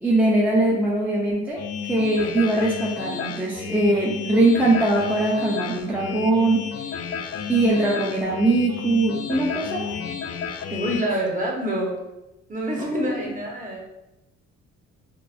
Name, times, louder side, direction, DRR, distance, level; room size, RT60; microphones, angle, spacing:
voice 1, 0.0-6.6 7.5-9.9 10.7-10.9 12.8-13.3, right 2 dB, 5° right, -6 dB, 0.6 m, -21 dB
sound 1, 1.6-11.0, left 7 dB, 55° left, 0.4 m, -32 dB
voice 2, 10.8-12.0 12.5-13.8, right 1 dB, 25° right, -3 dB, 1.2 m, -27 dB
4.4 x 2.6 x 2.6 m, 0.97 s
cardioid pair, 90°, 30 cm